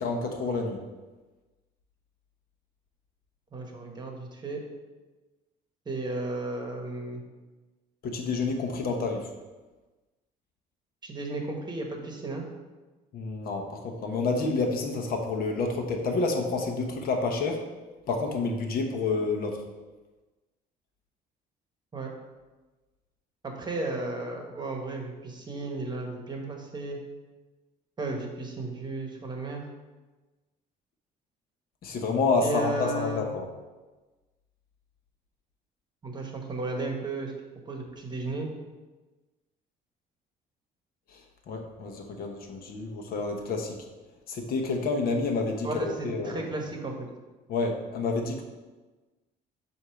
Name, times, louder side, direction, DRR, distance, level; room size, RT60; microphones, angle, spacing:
voice 1, 0.0-0.8 8.0-9.3 13.1-17.6 18.1-19.6 31.8-33.5 41.1-41.2 41.5-43.8 44.3-46.5 47.5-48.4, left 3 dB, 60° left, 3 dB, 1.0 m, -29 dB
voice 2, 3.5-4.6 5.9-7.2 11.0-12.4 21.9-22.1 23.4-27.0 28.0-29.6 32.4-33.2 36.0-37.3 37.7-38.5 45.6-47.1, right 2 dB, 25° right, 2 dB, 1.2 m, -34 dB
7.8 x 2.8 x 5.8 m, 1.2 s
cardioid pair, 110°, 17 cm